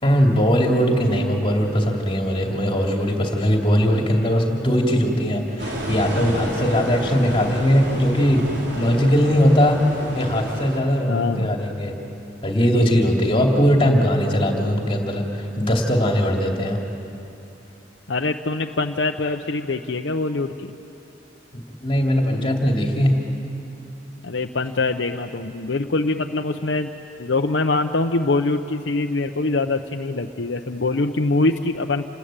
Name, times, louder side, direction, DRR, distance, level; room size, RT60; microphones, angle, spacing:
voice 1, 0.0-8.5 8.8-12.0 12.4-16.8 21.5-23.2, equal, 30° left, 1 dB, 2.6 m, -20 dB
sound 1, 5.6-10.8, equal, 65° right, 4.7 m, -30 dB
voice 2, 11.1-11.5 18.1-20.7 24.2-26.9 27.2-32.1, left 3 dB, 75° left, 4 dB, 0.8 m, -23 dB
28.0 x 20.5 x 8.9 m, 2.8 s
head